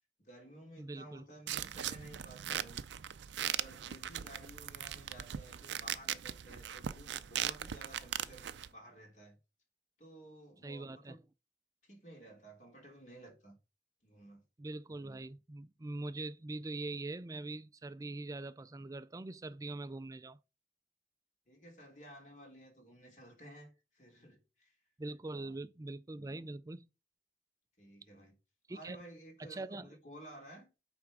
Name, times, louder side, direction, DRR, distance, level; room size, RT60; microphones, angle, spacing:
voice 1, 0.2-2.9 3.4-9.4 10.0-11.2 11.8-13.6 14.0-14.4 21.5-24.8 25.3-25.6 27.8-28.4 28.7-30.7, right 1 dB, 45° left, 2.8 m, -54 dB
voice 2, 0.8-1.2 10.6-11.1 14.6-20.4 25.0-26.9 28.7-29.0 29.4-29.9, right 2 dB, 20° right, 0.4 m, -43 dB
sound 1, 1.5-8.7, right 10 dB, 85° right, 0.4 m, -39 dB
8.6 x 3.5 x 4.8 m
head